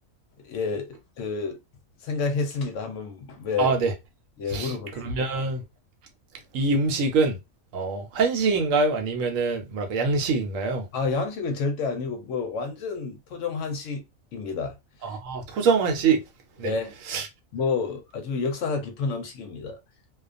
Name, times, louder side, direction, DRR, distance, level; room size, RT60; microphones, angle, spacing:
voice 1, 0.4-0.9 1.2-1.6 2.0-3.7 4.4-5.3 10.9-14.0 14.3-14.8 16.6-17.2 17.5-19.8, left 4 dB, 70° left, 0.9 m, -29 dB
voice 2, 3.6-3.9 4.5-5.6 6.5-7.4 7.7-10.9 15.0-16.2 16.6-16.7 17.1-17.3, right 4 dB, 70° right, 0.9 m, -24 dB
2.4 x 2.2 x 2.4 m
omnidirectional pair, 1.4 m